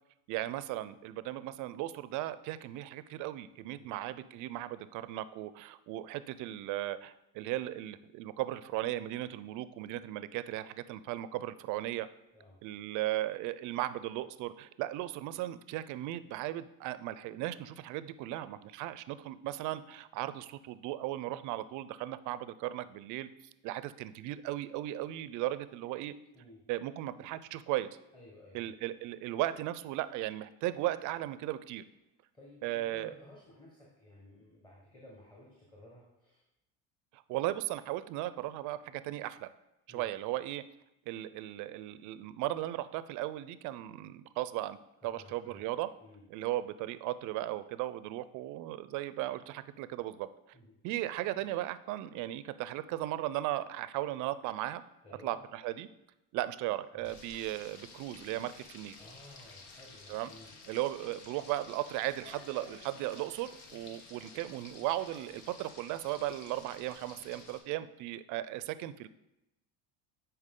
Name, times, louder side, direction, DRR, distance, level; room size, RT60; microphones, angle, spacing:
voice 1, 0.3-12.1 12.6-23.3 23.6-26.1 26.7-27.9 28.5-31.8 32.6-33.1 37.1-39.5 39.9-40.6 41.1-44.8 45.0-45.9 46.3-50.3 50.8-54.8 55.2-55.9 56.3-59.0 60.1-60.3 60.7-69.1, right 15 dB, 60° right, 15 dB, 0.5 m, -36 dB
voice 2, 28.1-28.7 32.3-36.4 39.9-40.1 45.2-45.6 46.0-46.2 50.5-50.7 55.0-55.4 56.9-57.1 59.0-60.8, left 1 dB, 15° left, -3 dB, 1.4 m, -55 dB
Frying (food), 57.0-67.6, left 3 dB, 80° left, 1.3 m, -53 dB
9.8 x 4.5 x 3.7 m, 0.91 s
cardioid pair, 125°, 35 cm